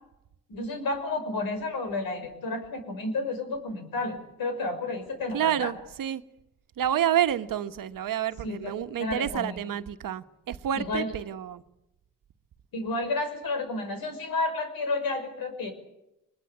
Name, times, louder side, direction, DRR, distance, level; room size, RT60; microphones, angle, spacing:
voice 1, 0.5-5.7 8.4-8.7 9.0-9.6 10.7-11.1 12.7-15.7, left 2 dB, 75° left, 5.9 m, -31 dB
voice 2, 5.3-6.2 6.8-11.6, right 10 dB, 65° right, 1.4 m, -29 dB
23.5 x 21.5 x 8.5 m
supercardioid pair, 50°, 36 cm